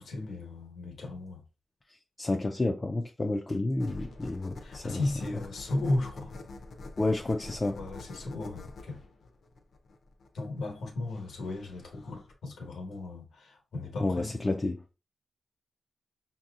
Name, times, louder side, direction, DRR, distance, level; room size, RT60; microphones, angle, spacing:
voice 1, 0.0-1.4 4.6-6.3 7.7-9.0 10.3-14.4, left 2 dB, 90° left, 1.2 m, -35 dB
voice 2, 2.2-5.0 7.0-7.8 14.0-14.8, left 2 dB, 25° left, 0.3 m, -30 dB
sound 1, 3.8-12.3, left 2 dB, 55° left, 0.6 m, -46 dB
5.9 x 2.8 x 2.4 m
wide cardioid pair, 150°, 0 cm